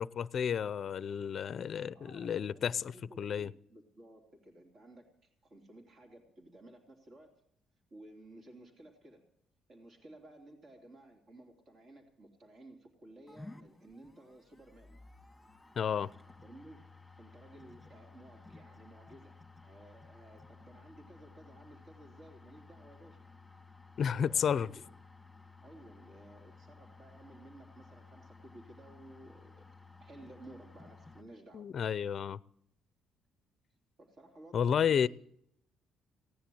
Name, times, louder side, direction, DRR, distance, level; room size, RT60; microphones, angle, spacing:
voice 1, 0.0-2.9 3.2-3.5 15.8-16.1 24.0-24.7 31.5-32.4 34.5-35.1, left 8 dB, 45° left, 17 dB, 0.5 m, -31 dB
voice 2, 1.9-7.4 7.9-9.3 9.7-15.0 16.4-23.3 24.2-24.8 25.6-29.7 30.0-31.7 34.0-35.1, right 1 dB, 45° right, 2 dB, 3.2 m, -55 dB
sound 1, 13.3-31.2, left 3 dB, 5° left, 2.0 m, -55 dB
17.5 x 10.5 x 7.8 m, 0.72 s
cardioid pair, 115°, 0 cm